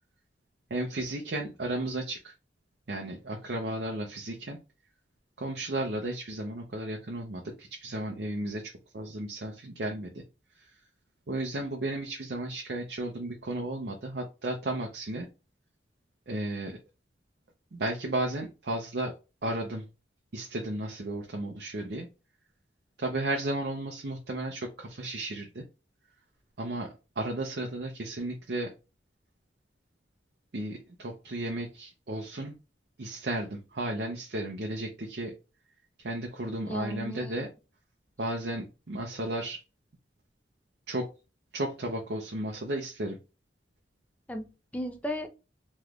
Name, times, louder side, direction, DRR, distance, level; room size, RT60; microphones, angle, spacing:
voice 1, 0.7-2.3 2.9-4.6 5.4-10.2 11.3-15.3 16.3-16.8 17.7-19.1 19.4-19.8 20.3-22.1 23.0-25.6 26.6-26.9 27.2-28.7 30.5-32.5 33.0-35.3 36.0-37.5 38.2-39.6 40.9-41.1 41.5-43.2, right 1 dB, 60° right, 1 dB, 0.6 m, -34 dB
voice 2, 36.7-37.3 44.3-45.3, equal, 10° left, 5 dB, 0.5 m, -35 dB
3.4 x 3.1 x 2.4 m, 0.29 s
head